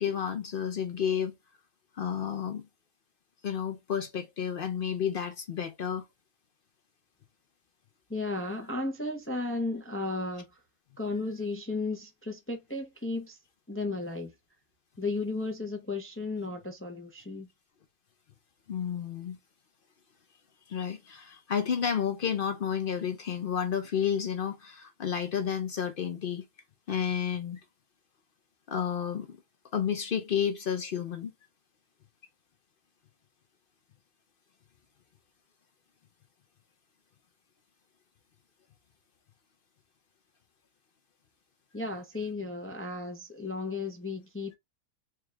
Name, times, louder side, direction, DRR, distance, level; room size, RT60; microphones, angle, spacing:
voice 1, 0.0-1.3 2.0-2.6 3.4-6.0 18.7-19.4 20.7-26.4 26.9-27.6 28.7-29.4 29.7-31.3, left 8 dB, 55° left, 0.6 m, -31 dB
voice 2, 8.1-10.6 11.0-13.4 13.7-14.3 15.0-17.5 41.7-44.5, left 3 dB, 15° left, 0.5 m, -34 dB
4.4 x 2.4 x 3.1 m
omnidirectional pair, 1.4 m